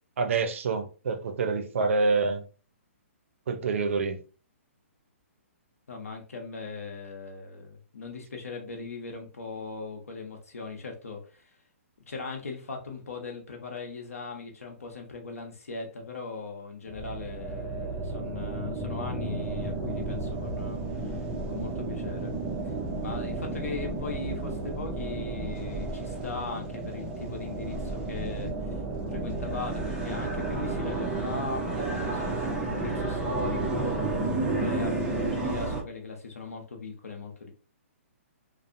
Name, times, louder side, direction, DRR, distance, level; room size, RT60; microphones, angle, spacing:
voice 1, 0.2-2.4 3.5-4.2, right 4 dB, 65° right, 0.5 m, -27 dB
voice 2, 5.9-11.5 12.1-22.3 22.6-22.7 23.0-28.8 29.1-37.5, left 4 dB, 90° left, 0.7 m, -39 dB
sound 1, 16.9-35.8, right 2 dB, 10° right, 0.4 m, -32 dB
2.5 x 2.0 x 2.5 m
hypercardioid pair, 150°, 8 cm